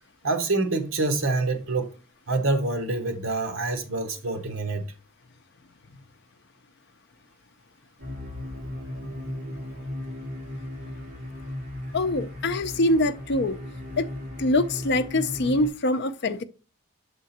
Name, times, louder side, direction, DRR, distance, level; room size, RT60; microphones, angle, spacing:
voice 1, 0.2-1.9 2.3-4.8 8.9-9.6, right 3 dB, 75° right, 1.1 m, -27 dB
sound 1, 8.0-15.7, left 1 dB, 40° right, 2.5 m, -36 dB
voice 2, 11.9-13.6 14.0-14.1 14.4-16.4, left 2 dB, 55° left, 0.5 m, -24 dB
6.8 x 3.7 x 4.2 m
head